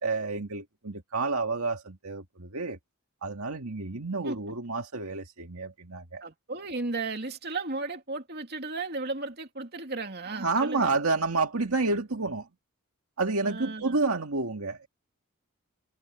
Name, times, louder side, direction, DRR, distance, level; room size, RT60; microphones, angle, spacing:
voice 1, 0.0-2.8 3.2-6.2 10.3-12.5 13.2-14.9, right 3 dB, 75° right, 2.1 m, -29 dB
voice 2, 6.2-11.0 13.4-14.0, right 3 dB, 45° right, 2.8 m, -35 dB
head